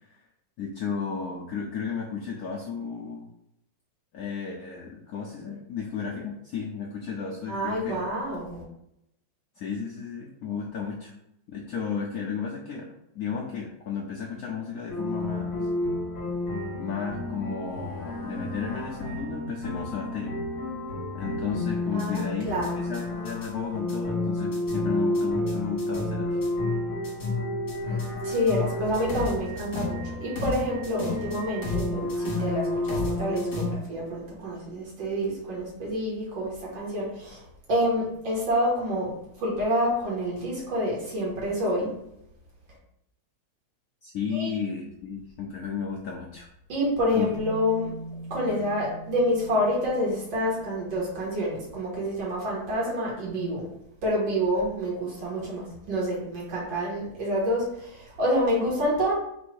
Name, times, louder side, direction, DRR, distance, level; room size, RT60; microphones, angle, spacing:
voice 1, 0.6-3.3 4.1-8.0 9.6-11.1 11.5-15.7 16.7-20.3 21.1-22.5 22.8-26.4 44.0-46.5 47.1-47.3 48.5-48.6, left 6 dB, 75° left, -2 dB, 0.8 m, -33 dB
voice 2, 7.5-8.6 21.9-22.8 27.9-39.1 39.4-41.9 44.3-44.5 46.7-47.9 48.3-53.7 54.0-59.1, equal, 70° right, -5 dB, 2.3 m, -28 dB
sound 1, 14.9-33.7, left 2 dB, 45° left, 1.6 m, -30 dB
sound 2, 47.2-51.5, right 2 dB, 30° right, 0.7 m, -42 dB
4.5 x 2.5 x 4.5 m, 0.81 s
omnidirectional pair, 2.2 m